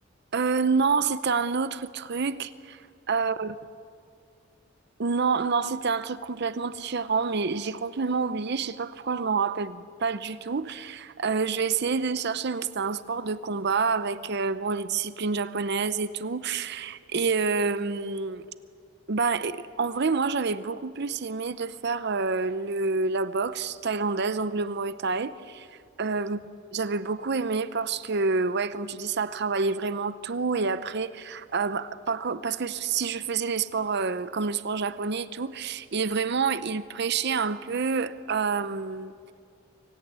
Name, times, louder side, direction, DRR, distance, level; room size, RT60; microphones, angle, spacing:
voice 1, 0.3-2.8 3.1-3.5 5.0-18.4 19.1-26.4 26.7-39.1, right 4 dB, 55° right, 0.6 m, -28 dB
24.5 x 17.0 x 9.6 m
head